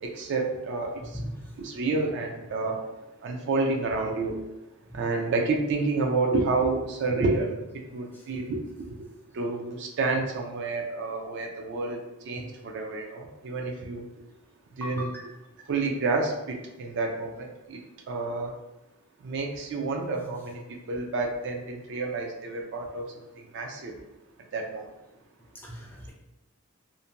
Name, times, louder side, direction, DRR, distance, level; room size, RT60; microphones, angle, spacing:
voice 1, 0.0-1.2 1.6-2.8 3.2-4.4 4.9-7.6 7.9-8.6 9.3-14.1 14.8-15.3 15.7-17.8 18.1-18.5 19.2-23.1 23.5-23.9 24.5-24.9, right 3 dB, 55° right, 2 dB, 0.4 m, -29 dB
voice 2, 14.8-15.2 25.6-26.1, equal, 10° left, -3 dB, 0.4 m, -37 dB
2.5 x 2.1 x 2.8 m, 0.98 s
head